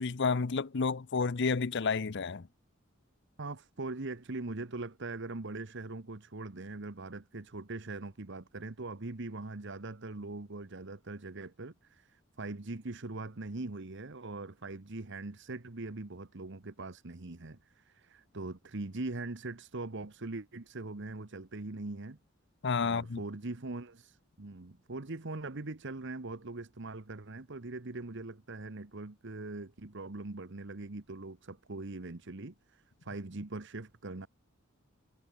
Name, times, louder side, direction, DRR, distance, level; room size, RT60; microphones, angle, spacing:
voice 1, 0.0-2.5 22.6-23.2, left 4 dB, 60° left, 0.7 m, -30 dB
voice 2, 3.4-22.2 22.8-34.3, right 2 dB, 60° right, 1.2 m, -41 dB
head